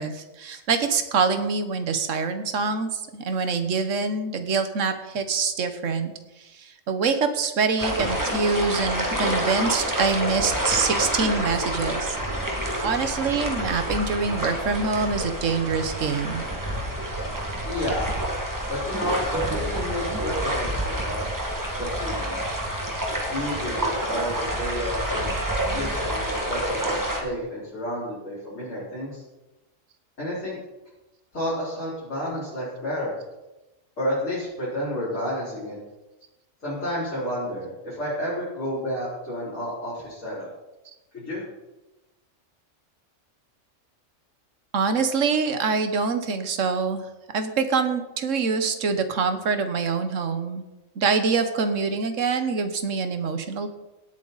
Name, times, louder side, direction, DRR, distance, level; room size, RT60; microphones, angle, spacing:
voice 1, 0.0-6.1 6.4-12.2 12.8-16.4 44.7-47.1 47.3-50.6 51.0-53.7, right 5 dB, 75° right, 8 dB, 1.5 m, -25 dB
sound 1, 7.8-27.2, right 1 dB, 15° right, 1.9 m, -28 dB
voice 2, 17.6-18.2 18.7-21.3 21.7-22.4 23.3-25.4 25.7-29.2 30.2-30.6 31.3-33.2 34.0-35.8 36.6-40.5 41.1-41.4, equal, 85° left, -12 dB, 5.3 m, -30 dB
17.5 x 8.7 x 4.1 m, 1.0 s
omnidirectional pair, 1.3 m